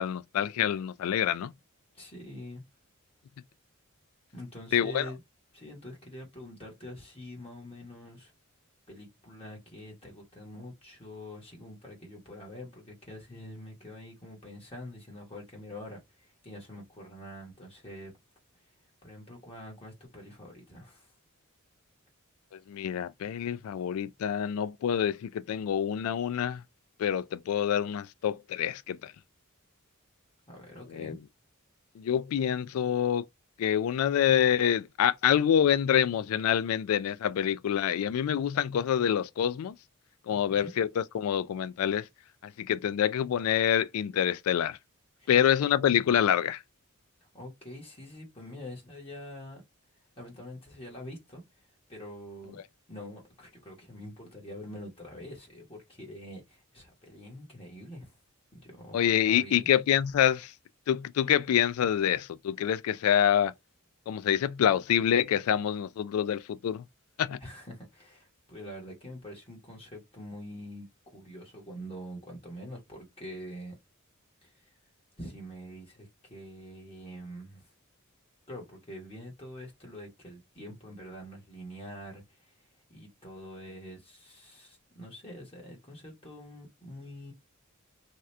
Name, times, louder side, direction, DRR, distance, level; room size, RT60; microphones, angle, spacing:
voice 1, 0.0-1.5 4.7-5.1 22.5-26.6 27.0-29.1 30.9-31.2 32.0-33.2 33.6-39.7 40.3-42.1 42.4-44.8 45.3-46.6 58.9-60.5 60.9-63.5 64.1-66.8 67.2-67.4, left 9 dB, 80° left, 0.3 m, -26 dB
voice 2, 1.9-2.6 4.3-5.2 5.5-8.3 8.9-18.1 19.0-21.1 30.5-31.2 40.3-40.7 45.2-45.3 47.2-49.6 50.2-52.6 52.9-58.1 58.5-59.7 67.4-73.7 74.4-74.6 75.2-77.7 78.5-82.6 82.9-87.3, equal, 25° left, 1.2 m, -45 dB
2.8 x 2.4 x 3.2 m
head